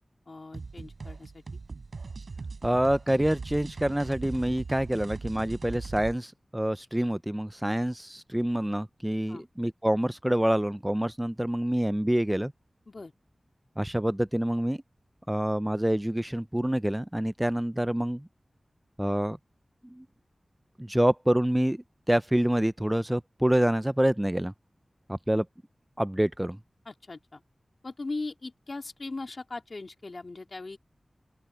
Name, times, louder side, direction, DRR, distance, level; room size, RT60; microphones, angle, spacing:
voice 1, 0.3-1.4 9.3-9.4 12.9-13.1 26.8-27.4 27.8-30.8, left 3 dB, 55° left, 2.9 m, -39 dB
sound 1, 0.5-6.2, right 4 dB, 80° right, 4.9 m, -40 dB
voice 2, 2.6-12.5 13.8-14.8 15.3-18.3 19.0-19.4 19.9-20.1 20.8-24.5 25.1-25.5 26.0-26.6, right 1 dB, 10° right, 0.4 m, -27 dB
open air
wide cardioid pair, 80°, 0 cm